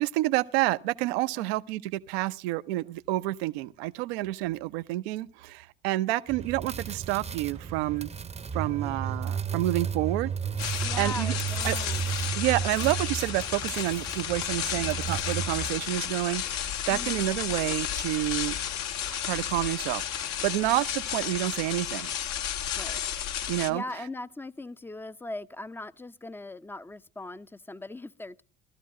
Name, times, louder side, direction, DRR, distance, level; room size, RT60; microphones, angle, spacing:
voice 1, 0.0-8.1 8.5-10.3 10.6-11.3 11.6-11.8 12.4-18.6 19.1-22.1 23.5-23.8, right 17 dB, 75° right, 0.7 m, -29 dB
sound 1, 6.3-15.7, right 7 dB, 20° right, 0.8 m, -33 dB
sound 2, 10.6-23.7, left 10 dB, 60° left, 1.1 m, -33 dB
voice 2, 10.8-12.0 16.9-17.2 22.8-23.0 23.7-28.4, left 2 dB, 5° left, 0.6 m, -39 dB
sound 3, 14.4-22.0, left 7 dB, 80° left, 6.5 m, -53 dB
17.5 x 12.5 x 3.7 m
hypercardioid pair, 65°, 31 cm